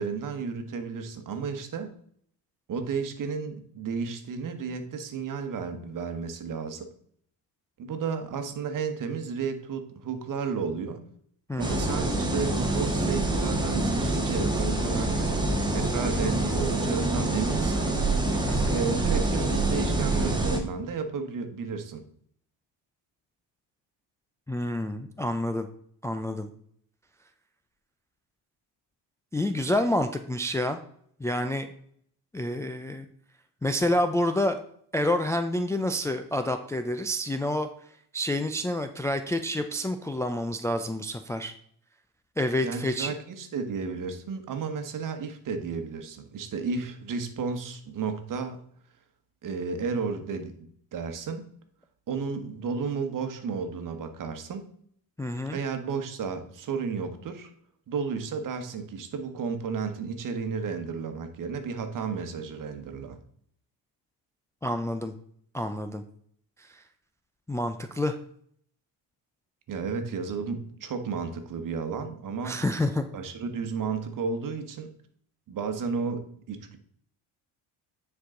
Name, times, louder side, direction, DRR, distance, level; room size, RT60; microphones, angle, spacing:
voice 1, 0.0-1.9 2.7-6.9 7.8-11.0 11.6-15.2 15.7-18.0 18.7-22.0 42.6-48.6 49.4-51.4 52.1-54.6 55.5-57.5 57.9-63.2 69.7-72.6 73.1-74.9 75.5-76.8, right 5 dB, 50° right, 7 dB, 1.3 m, -33 dB
voice 2, 11.5-11.8 18.5-18.8 24.5-25.7 26.0-26.5 29.3-30.8 31.2-31.7 32.3-33.1 33.6-34.6 34.9-37.7 38.1-41.5 42.4-43.1 55.2-55.6 64.6-65.1 65.5-66.0 66.6-66.8 67.5-68.2 72.4-73.0, left 1 dB, 5° left, 6 dB, 0.4 m, -28 dB
sound 1, 11.6-20.6, right 2 dB, 10° right, 1.4 m, -26 dB
9.4 x 4.8 x 3.8 m, 0.63 s
cardioid pair, 110°, 42 cm